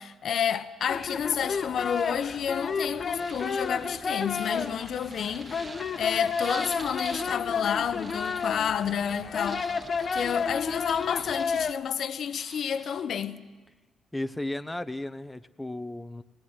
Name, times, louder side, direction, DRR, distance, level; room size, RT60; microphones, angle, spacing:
voice 1, 0.0-5.7 6.0-9.7 10.1-13.4, left 8 dB, 60° left, 1.0 m, -30 dB
sound 1, 0.9-11.7, left 5 dB, 45° left, 1.2 m, -31 dB
sound 2, 1.9-2.3 3.1-7.3 7.6-8.9 9.4-11.8 12.1-13.0, right 3 dB, 35° right, 2.5 m, -46 dB
voice 2, 14.1-16.2, left 1 dB, 10° left, 0.8 m, -34 dB
19.5 x 19.0 x 9.7 m
cardioid pair, 90°, 0 cm